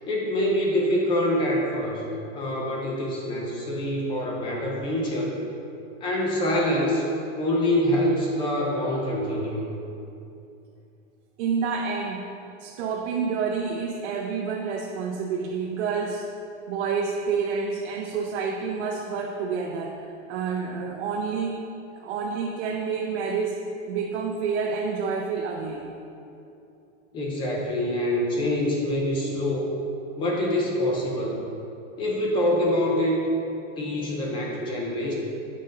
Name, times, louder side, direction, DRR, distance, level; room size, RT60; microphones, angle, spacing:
voice 1, 0.1-2.0 2.3-5.4 6.0-7.0 7.4-9.7 27.1-29.7 30.2-31.4 32.0-33.2 33.8-35.1, left 1 dB, 15° left, -2 dB, 0.4 m, -25 dB
voice 2, 11.4-12.3 12.6-16.3 16.7-21.6 21.9-26.0, right 5 dB, 65° right, 0 dB, 0.7 m, -29 dB
7.6 x 5.1 x 3.9 m, 2.7 s
supercardioid pair, 170°, 36 cm